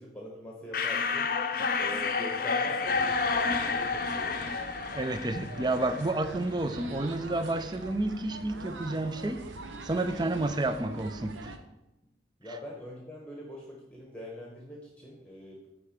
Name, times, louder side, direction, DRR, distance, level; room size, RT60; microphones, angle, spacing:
voice 1, 0.0-1.3 1.8-4.8 12.0-12.1 12.4-15.7, equal, 5° left, -3 dB, 1.1 m, -44 dB
sound 1, 0.7-6.3, left 4 dB, 50° left, 0.6 m, -30 dB
sound 2, 2.9-11.6, right 2 dB, 90° right, 0.8 m, -44 dB
voice 2, 4.9-9.4 9.8-11.5, right 2 dB, 25° right, 10 dB, 0.5 m, -30 dB
8.7 x 4.8 x 5.1 m, 0.94 s
head